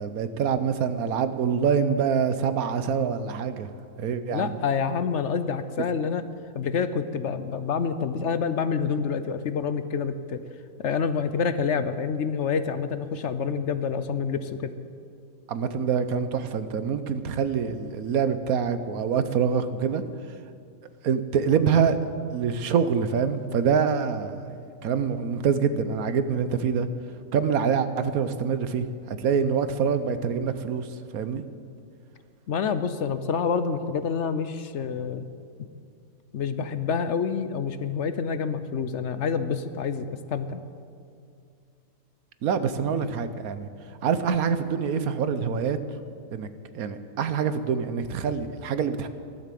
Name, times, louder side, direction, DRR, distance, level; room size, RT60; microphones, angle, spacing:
voice 1, 0.0-3.7 4.0-4.6 15.5-20.0 21.0-26.9 27.3-30.9 31.1-31.4 42.4-43.7 44.0-45.8 46.3-46.5 46.7-49.1, right 6 dB, 85° right, 11 dB, 1.3 m, -25 dB
voice 2, 4.3-6.2 6.5-10.4 10.8-14.7 32.5-35.3 36.3-40.6, left 6 dB, 60° left, 11 dB, 0.9 m, -27 dB
15.0 x 12.0 x 7.7 m, 2.3 s
omnidirectional pair, 1.5 m